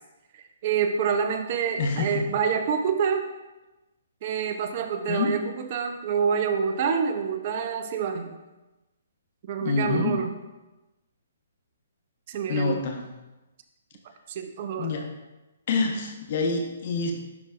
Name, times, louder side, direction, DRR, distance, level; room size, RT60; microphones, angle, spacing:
voice 1, 0.3-3.2 4.2-8.4 9.4-10.3 12.3-12.8 14.3-14.9, right 6 dB, 45° right, 7 dB, 0.6 m, -27 dB
voice 2, 1.8-2.2 5.1-5.4 9.6-10.1 12.5-13.0 14.8-15.0 15.7-17.1, left 4 dB, 50° left, 3 dB, 1.1 m, -26 dB
11.0 x 4.0 x 2.5 m, 1.1 s
hypercardioid pair, 140°, 0 cm